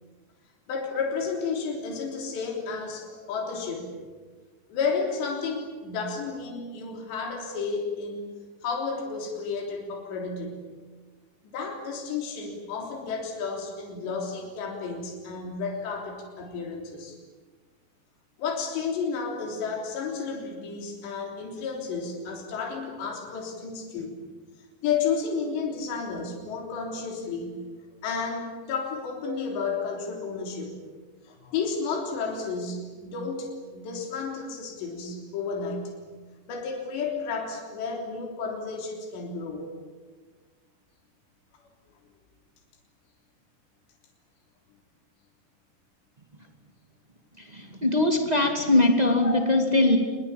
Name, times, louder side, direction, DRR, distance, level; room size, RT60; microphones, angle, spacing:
voice 1, 0.7-4.0 4.7-8.3 8.6-10.7 11.4-17.2 18.4-24.2 24.8-27.7 28.0-30.7 31.3-36.0 36.5-39.7 49.2-49.4, left 5 dB, 80° left, 1 dB, 5.7 m, -32 dB
voice 2, 47.5-50.0, left 2 dB, 20° right, 3 dB, 1.0 m, -21 dB
26.0 x 21.5 x 8.6 m, 1.4 s
omnidirectional pair, 5.0 m